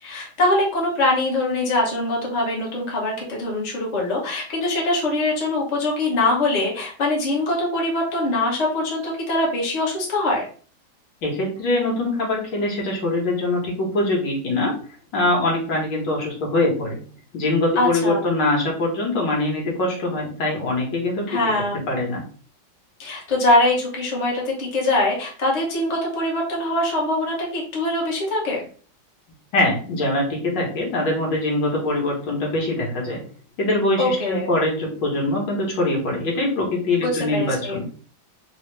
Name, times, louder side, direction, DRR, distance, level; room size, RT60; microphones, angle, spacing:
voice 1, 0.0-10.5 17.8-18.2 21.3-21.9 23.0-28.7 34.0-34.5 37.0-37.8, left 2 dB, 40° left, -2 dB, 0.6 m, -23 dB
voice 2, 11.2-14.8 15.1-17.0 17.3-21.3 21.9-22.2 29.5-33.2 33.6-37.9, left 2 dB, 65° left, -1 dB, 1.6 m, -23 dB
4.0 x 2.0 x 3.2 m, 0.42 s
omnidirectional pair, 2.2 m